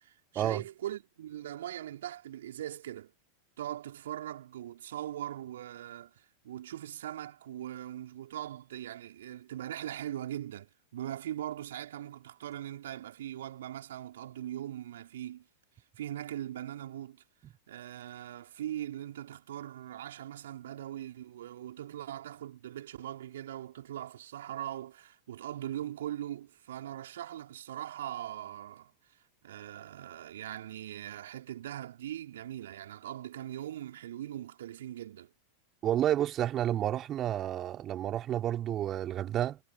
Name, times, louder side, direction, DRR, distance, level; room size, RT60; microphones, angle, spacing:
voice 1, 0.0-3.1 3.6-15.4 16.0-17.2 17.7-28.9 29.4-35.3, right 12 dB, 60° right, 4.5 m, -41 dB
voice 2, 35.8-39.6, right 11 dB, 30° right, 2.9 m, -30 dB
figure-of-eight pair, 90°, 0 cm